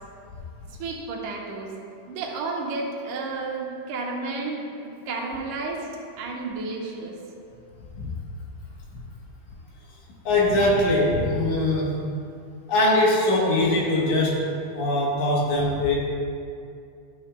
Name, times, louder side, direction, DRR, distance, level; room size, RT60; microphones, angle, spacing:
voice 1, 0.7-1.7 2.1-5.9 6.2-7.2, right 3 dB, 80° right, 0 dB, 2.3 m, -32 dB
voice 2, 10.3-12.0 12.7-16.0, left 1 dB, 70° left, -3 dB, 2.5 m, -22 dB
11.5 x 7.1 x 2.2 m, 2.4 s
omnidirectional pair, 3.6 m